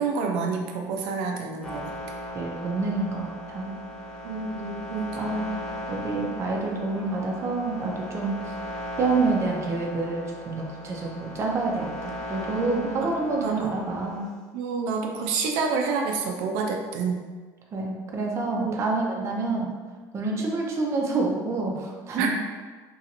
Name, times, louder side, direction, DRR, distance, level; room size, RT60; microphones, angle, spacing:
voice 1, 0.0-1.9 4.2-5.1 13.4-13.7 14.5-17.2 18.5-18.7 22.2-22.3, right 5 dB, 85° right, 2 dB, 0.4 m, -28 dB
sound 1, 1.6-14.3, left 1 dB, 5° left, 0.7 m, -37 dB
voice 2, 2.3-3.8 5.2-5.5 5.9-8.4 9.0-14.2 17.7-19.7 20.1-22.3, right 3 dB, 35° right, -1 dB, 0.5 m, -28 dB
3.0 x 2.5 x 2.8 m, 1.4 s
cardioid pair, 125°, 8 cm